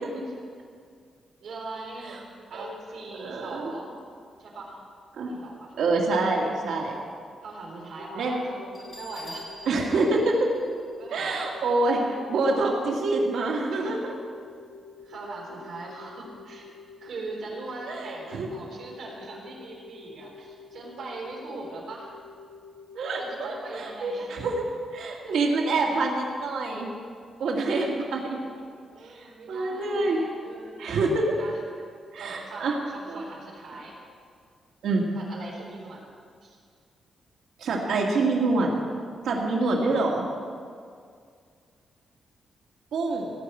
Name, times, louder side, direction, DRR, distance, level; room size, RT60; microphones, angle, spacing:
voice 1, 1.4-2.2 2.5-4.0 4.4-4.8 5.3-5.7 7.4-9.4 11.0-11.4 13.7-14.0 15.0-16.7 17.0-22.1 23.2-24.5 28.9-30.8 31.4-31.6 32.2-34.0 35.2-36.0 36.4-36.6, right 3 dB, 70° right, -3 dB, 3.9 m, -40 dB
voice 2, 3.2-3.7 5.2-5.3 5.8-6.9 8.2-8.4 9.7-10.5 11.1-14.0 17.9-18.5 22.9-24.6 24.9-26.9 27.4-28.4 29.1-30.2 30.8-31.3 32.1-32.8 33.1-33.2 34.8-35.0 37.6-38.7 39.2-40.3 42.9-43.3, right 3 dB, 90° right, -1 dB, 2.1 m, -26 dB
sound 1, 8.0-23.8, left 5 dB, 75° left, 1.7 m, -48 dB
Bell, 8.7-11.4, equal, 15° left, 3.8 m, -46 dB
17.5 x 5.9 x 9.0 m, 2.1 s
wide cardioid pair, 165°, 0 cm